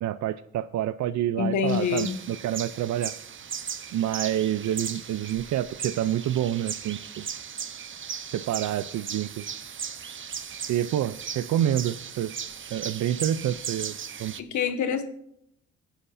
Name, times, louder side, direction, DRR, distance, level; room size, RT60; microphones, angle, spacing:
voice 1, 0.0-3.1 3.9-7.3 8.3-9.5 10.7-12.4 12.7-14.3, right 11 dB, 70° right, 13 dB, 0.6 m, -28 dB
voice 2, 1.4-2.2 14.4-15.0, left 7 dB, 70° left, 8 dB, 1.7 m, -26 dB
sound 1, 1.7-14.4, right 7 dB, 40° right, 1.0 m, -37 dB
18.5 x 10.0 x 2.7 m, 0.73 s
cardioid pair, 90°, 30 cm